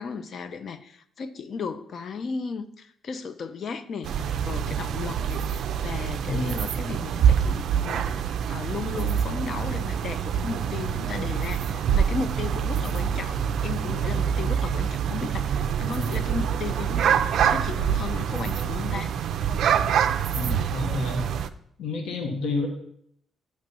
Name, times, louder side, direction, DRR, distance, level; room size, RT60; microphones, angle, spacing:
voice 1, 0.0-19.1, left 5 dB, 55° left, 11 dB, 0.6 m, -35 dB
sound 1, 4.0-21.5, right 8 dB, 70° right, 0.4 m, -26 dB
voice 2, 20.3-21.3 21.8-22.7, left 3 dB, 80° left, 3 dB, 1.2 m, -29 dB
8.6 x 3.2 x 5.3 m, 0.69 s
cardioid pair, 90°, 0 cm